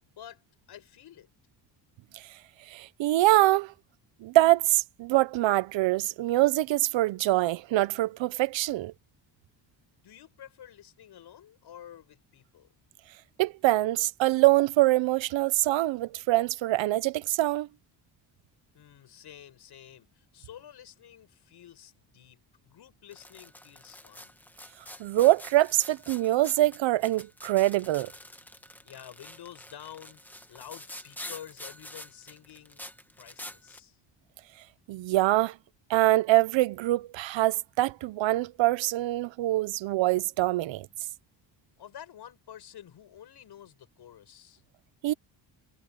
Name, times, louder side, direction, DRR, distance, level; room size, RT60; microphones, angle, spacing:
voice 1, 0.1-1.3 10.0-12.7 18.7-24.3 28.8-32.9 33.2-34.0 41.8-44.6, left 10 dB, 60° left, 7.4 m, -49 dB
voice 2, 2.7-3.7 4.2-8.9 13.4-17.7 25.0-28.1 34.9-35.6 35.9-40.9 45.0-45.1, right 17 dB, 85° right, 0.8 m, -24 dB
sound 1, 23.1-33.8, left 1 dB, 5° left, 1.4 m, -47 dB
cardioid pair, 165°, 44 cm